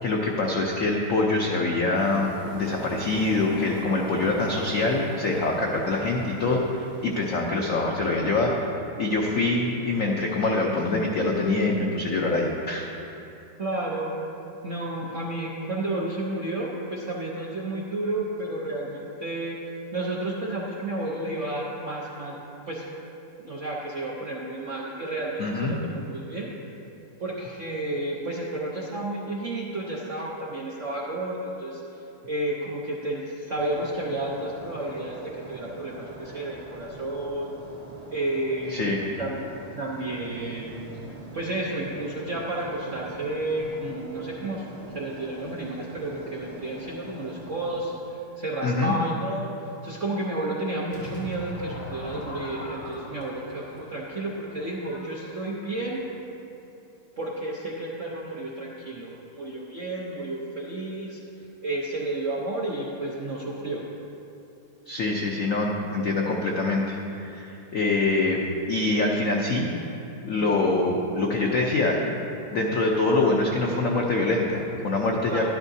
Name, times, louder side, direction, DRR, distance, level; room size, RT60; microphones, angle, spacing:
voice 1, 0.0-12.9 25.4-25.7 38.7-39.0 48.6-48.9 64.9-68.4 68.7-69.7 70.2-72.1 72.5-75.5, left 2 dB, 90° left, -1 dB, 0.7 m, -25 dB
Waves surf, 1.9-7.4, right 1 dB, 20° right, 0.5 m, -42 dB
voice 2, 13.6-14.2 14.6-19.6 19.9-22.4 22.7-22.8 23.4-26.5 27.2-31.8 32.3-37.5 38.1-39.4 39.8-40.8 41.3-44.7 44.9-49.5 49.8-56.0 57.2-61.2 61.6-63.8 75.3-75.5, right 2 dB, 65° right, -4 dB, 0.7 m, -31 dB
sound 1, 33.5-48.0, right 1 dB, 80° right, 0.3 m, -43 dB
Crowd / Fireworks, 50.9-56.2, equal, 65° left, 2.7 m, -41 dB
11.5 x 11.5 x 2.7 m, 2.8 s
omnidirectional pair, 2.4 m